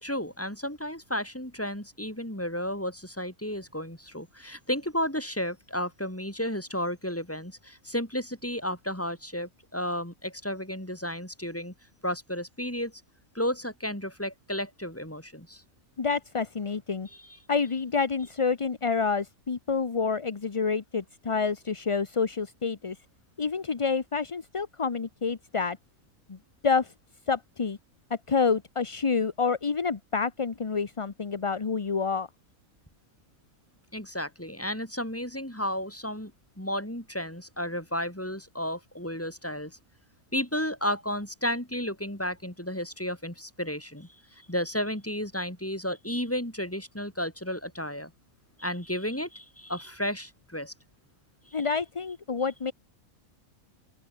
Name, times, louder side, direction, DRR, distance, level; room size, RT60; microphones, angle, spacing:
voice 1, 0.0-11.7 12.0-12.9 13.3-15.6 17.1-17.4 33.9-36.3 36.6-39.8 40.3-48.1 48.6-50.7 51.5-51.7, equal, 10° left, 4.9 m, -33 dB
voice 2, 16.0-17.1 17.5-23.0 23.4-25.8 26.3-26.4 26.6-26.9 27.3-27.8 28.1-32.3 51.5-52.7, left 5 dB, 30° left, 0.7 m, -28 dB
open air
omnidirectional pair, 1.4 m